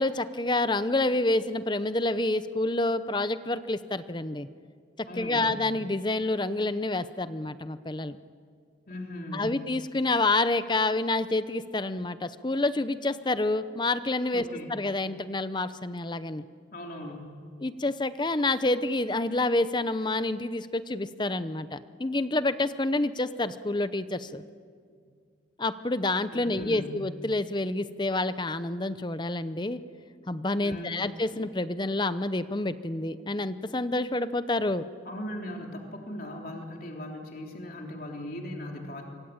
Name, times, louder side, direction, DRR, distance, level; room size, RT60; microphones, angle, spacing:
voice 1, 0.0-4.5 5.0-8.2 9.3-16.4 17.6-24.4 25.6-29.8 30.3-34.9, left 2 dB, 25° left, 13 dB, 0.7 m, -28 dB
voice 2, 5.1-5.6 8.9-9.5 14.3-14.7 16.7-17.3 24.9-25.0 26.3-26.9 30.6-31.1 35.1-39.0, left 1 dB, 50° left, 1 dB, 3.7 m, -39 dB
26.0 x 24.5 x 8.8 m, 2.1 s
head